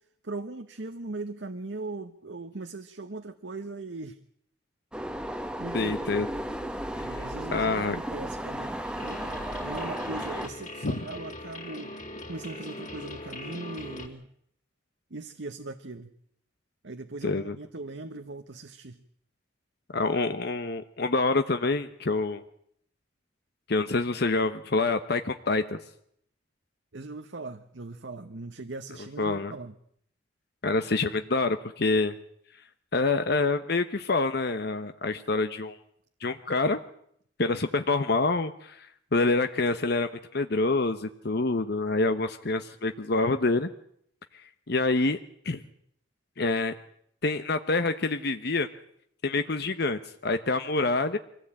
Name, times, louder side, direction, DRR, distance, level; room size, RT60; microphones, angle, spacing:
voice 1, 0.2-4.2 5.6-6.3 7.0-9.2 9.6-11.9 12.3-14.3 15.1-16.1 16.8-19.0 26.9-29.8, right 3 dB, 70° right, 7 dB, 1.1 m, -39 dB
sound 1, 4.9-10.5, equal, 5° right, 1.1 m, -34 dB
voice 2, 5.7-6.3 7.0-7.2 7.5-8.0 10.8-11.0 17.2-17.6 19.9-22.4 23.7-25.8 29.2-29.5 30.6-32.2 32.9-35.8 36.2-36.8 37.4-38.9 39.1-43.7 44.7-45.2 45.4-45.6 46.4-46.7 47.2-48.7 49.2-51.2, left 3 dB, 60° left, 9 dB, 0.9 m, -26 dB
sound 2, 9.0-14.1, left 1 dB, 40° left, 3.8 m, -41 dB
24.5 x 17.0 x 8.8 m, 0.69 s
head